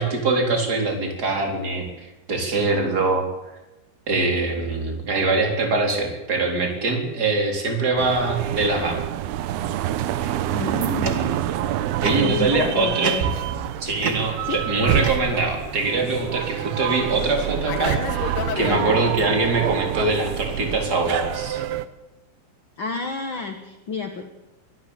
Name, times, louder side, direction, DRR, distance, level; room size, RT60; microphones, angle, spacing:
voice 1, 0.0-3.2 4.1-9.0 12.0-13.2 13.8-21.6, right 3 dB, 25° right, 3 dB, 4.3 m, -23 dB
sound 1, 8.0-21.9, right 11 dB, 80° right, 2.8 m, -27 dB
sound 2, 10.2-11.6 12.0-12.5 13.0-13.7 14.0-15.7, right 5 dB, 60° right, 1.0 m, -32 dB
voice 2, 10.4-11.4 12.2-13.2 14.4-14.6 18.7-18.9 22.8-24.2, left 5 dB, 55° left, 6 dB, 1.4 m, -30 dB
Fixed-wing aircraft airplane, 12.5-18.9, left 8 dB, 80° left, 3.7 m, -35 dB
23.0 x 13.5 x 8.9 m, 0.99 s
omnidirectional pair, 4.6 m